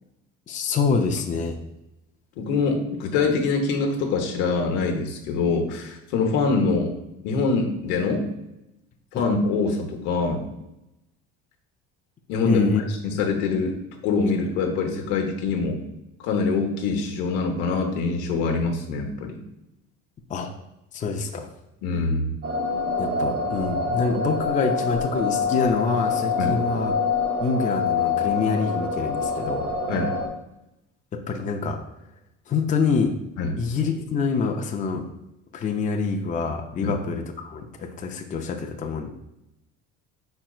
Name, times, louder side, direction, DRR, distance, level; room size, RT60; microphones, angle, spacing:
voice 1, 0.5-1.6 9.1-9.2 12.5-12.8 20.3-20.5 20.9-21.5 23.0-26.9 27.4-29.7 31.1-31.8 32.5-33.1 33.6-35.0 35.5-39.1, left 5 dB, 25° left, 3 dB, 0.5 m, -26 dB
voice 2, 2.4-6.9 7.2-8.3 9.1-10.5 12.3-13.8 14.0-15.8 16.2-19.4 21.8-22.3 26.4-26.6 29.9-30.2 33.4-33.6 36.8-37.0, left 4 dB, 85° left, 3 dB, 1.0 m, -24 dB
sound 1, 22.4-30.3, left 4 dB, 45° right, 0.7 m, -26 dB
4.9 x 4.4 x 2.3 m, 0.89 s
cardioid pair, 115°, 32 cm